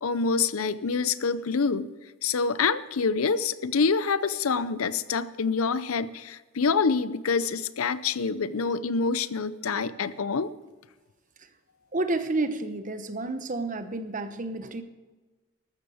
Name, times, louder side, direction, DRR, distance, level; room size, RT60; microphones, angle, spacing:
voice 1, 0.0-1.9 2.2-10.5, left 5 dB, 85° left, 16 dB, 0.6 m, -26 dB
voice 2, 11.9-14.8, right 2 dB, 40° right, 9 dB, 1.0 m, -30 dB
14.0 x 13.0 x 5.0 m, 1.2 s
head